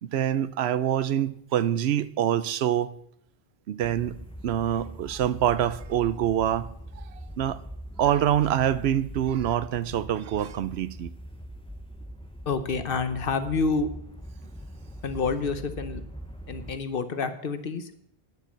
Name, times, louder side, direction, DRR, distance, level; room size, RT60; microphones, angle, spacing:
voice 1, 0.0-2.9 3.7-6.7 7.0-7.1 7.4-7.6 8.0-11.1, right 10 dB, 75° right, 0.8 m, -25 dB
sound 1, 3.8-16.8, equal, 5° left, 0.6 m, -42 dB
voice 2, 12.5-13.9 15.0-16.0 16.5-17.8, left 4 dB, 60° left, 1.0 m, -28 dB
9.7 x 7.4 x 7.3 m
omnidirectional pair, 1.1 m